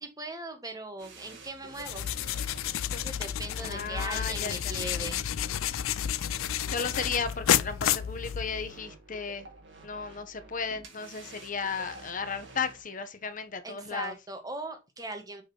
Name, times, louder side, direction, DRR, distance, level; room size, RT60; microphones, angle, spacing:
voice 1, 0.0-2.1 2.9-5.2 13.6-15.4, right 2 dB, 20° right, 1.3 m, -39 dB
sound 1, 1.0-12.8, right 2 dB, 60° right, 2.0 m, -50 dB
sound 2, 1.8-8.8, left 10 dB, 85° left, 0.4 m, -31 dB
voice 2, 3.6-4.9 6.7-9.5 9.8-14.1, left 5 dB, 40° left, 0.8 m, -35 dB
6.2 x 5.2 x 2.9 m
head